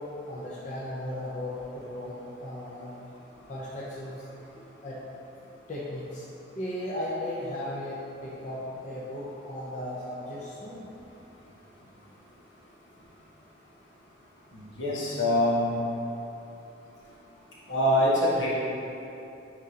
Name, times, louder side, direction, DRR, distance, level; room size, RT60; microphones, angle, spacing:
voice 1, 0.0-2.9 3.5-4.2 4.8-5.0 5.7-6.3 6.5-10.9 17.3-17.4, left 1 dB, 40° left, -6 dB, 0.6 m, -36 dB
voice 2, 14.5-15.7 17.7-18.5, left 1 dB, 75° left, -7 dB, 1.4 m, -24 dB
8.9 x 3.8 x 2.9 m, 2.9 s
head